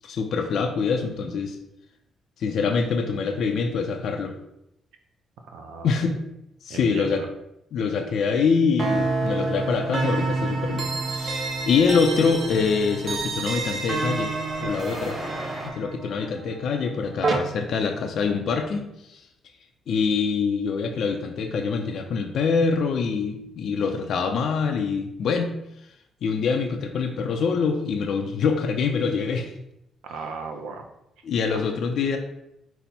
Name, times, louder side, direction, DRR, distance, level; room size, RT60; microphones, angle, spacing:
voice 1, 0.0-1.6 2.4-4.4 5.8-6.2 6.6-7.2 7.7-15.2 15.6-19.2 19.9-25.5 26.2-29.5 31.2-32.2, left 5 dB, 70° left, 3 dB, 0.4 m, -25 dB
voice 2, 5.5-6.0 6.7-7.3 30.1-30.9 31.5-31.7, right 4 dB, 90° right, 4 dB, 0.5 m, -36 dB
sound 1, 8.8-17.4, right 3 dB, 45° right, 0.6 m, -28 dB
sound 2, 10.0-15.7, equal, 10° right, 1.2 m, -41 dB
5.3 x 2.1 x 4.3 m, 0.83 s
cardioid pair, 90°, 0 cm